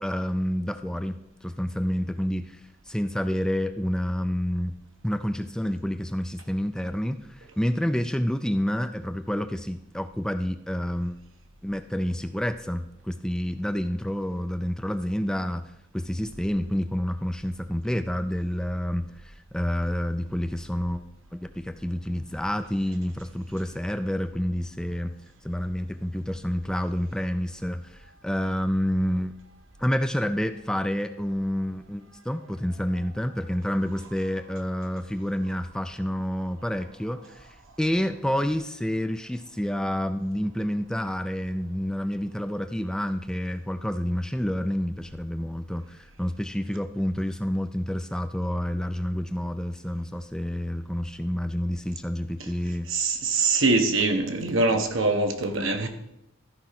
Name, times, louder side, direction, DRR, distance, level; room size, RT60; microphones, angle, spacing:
voice 1, 0.0-4.8 5.0-11.2 11.6-21.1 21.3-25.1 25.4-29.3 29.8-52.9, equal, 5° left, 0.3 m, -29 dB
voice 2, 52.9-55.9, right 3 dB, 75° right, 1.4 m, -23 dB
13.5 x 4.8 x 5.9 m
head